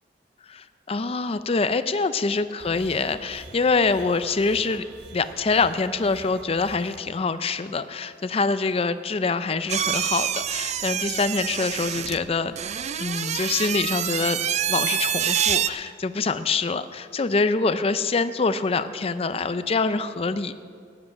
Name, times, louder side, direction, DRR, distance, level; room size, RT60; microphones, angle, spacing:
voice 1, 0.5-4.8 5.1-12.6 13.0-14.4 14.7-20.5, left 4 dB, 35° left, 12 dB, 0.5 m, -25 dB
sound 1, 2.6-7.0, right 2 dB, 65° right, 1.4 m, -46 dB
sound 2, 9.7-15.7, right 9 dB, 40° right, 0.4 m, -26 dB
15.0 x 10.5 x 5.9 m, 2.2 s
head